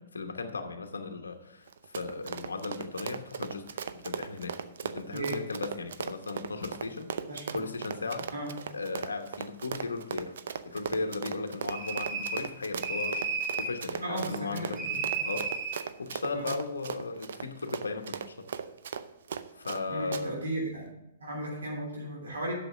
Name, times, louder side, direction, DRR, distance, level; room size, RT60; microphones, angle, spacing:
voice 1, 0.0-7.1 7.5-8.3 8.7-10.3 10.7-13.2 13.6-18.5 19.5-20.4, left 3 dB, 85° left, 5 dB, 1.0 m, -37 dB
Run, 1.7-19.8 20.1-20.2, right 7 dB, 70° right, 0.6 m, -37 dB
sound 1, 11.7-12.5 12.8-13.8 14.8-15.8, right 4 dB, 30° right, 2.7 m, -33 dB
voice 2, 14.0-14.9 16.3-16.5 19.9-20.9 21.2-22.5, right 1 dB, 85° right, -2 dB, 3.2 m, -35 dB
7.8 x 6.7 x 6.6 m, 0.90 s
hypercardioid pair, 120°, 0 cm